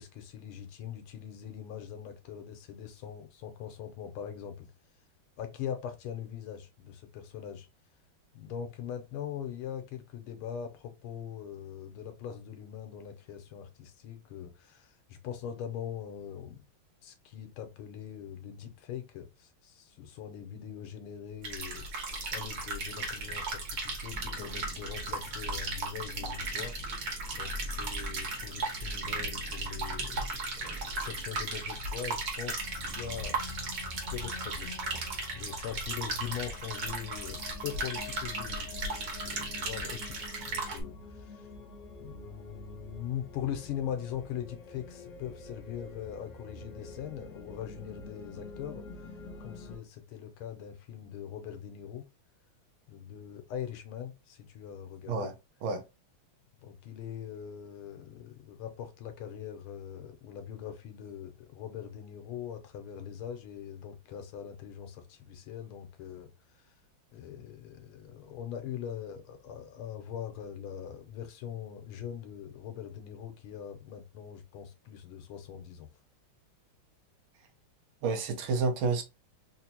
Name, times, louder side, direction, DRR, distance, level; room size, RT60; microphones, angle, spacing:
voice 1, 0.0-4.7 5.4-7.7 8.3-16.6 17.0-26.8 27.3-30.4 31.0-33.4 34.1-34.7 35.0-38.7 39.0-41.5 42.0-48.8 49.4-52.0 52.9-55.3 56.6-66.7 67.1-75.9, left 9 dB, 90° left, 1.6 m, -42 dB
Thunder, 21.4-35.0, equal, 10° right, 1.0 m, -46 dB
sound 1, 21.4-40.8, right 3 dB, 60° right, 1.6 m, -36 dB
sound 2, 32.6-49.8, left 3 dB, 70° left, 0.7 m, -47 dB
voice 2, 78.0-79.0, right 4 dB, 75° right, 1.5 m, -29 dB
3.9 x 2.6 x 2.8 m
omnidirectional pair, 2.3 m